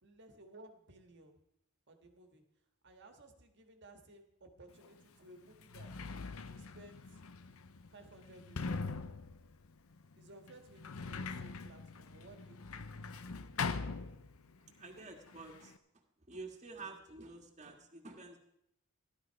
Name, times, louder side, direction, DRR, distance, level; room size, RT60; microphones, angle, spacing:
voice 1, 0.0-1.4 1.9-2.4 2.8-5.9 6.5-7.3 7.9-9.0 10.2-12.9, right 2 dB, 55° right, 4 dB, 1.7 m, -58 dB
Sliding door, 4.8-4.9 5.5-14.7 14.9-15.8, left 4 dB, 75° left, 0.7 m, -42 dB
voice 2, 14.8-15.7 16.3-18.4, right 3 dB, 35° right, 2 dB, 1.8 m, -49 dB
15.5 x 12.0 x 4.6 m, 0.80 s
head